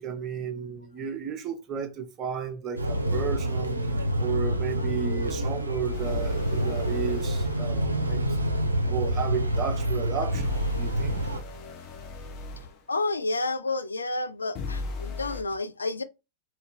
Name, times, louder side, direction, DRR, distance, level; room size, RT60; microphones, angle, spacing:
voice 1, 0.0-3.8 4.2-11.2, right 7 dB, 30° right, 0.7 m, -33 dB
sound 1, 2.8-11.4, equal, 80° right, 0.4 m, -27 dB
sound 2, 5.9-7.6 10.3-12.7 14.5-15.4, left 1 dB, 40° left, 0.8 m, -36 dB
voice 2, 12.9-16.0, left 2 dB, 75° left, 0.3 m, -30 dB
2.8 x 2.7 x 3.4 m
figure-of-eight pair, 90°, 0 cm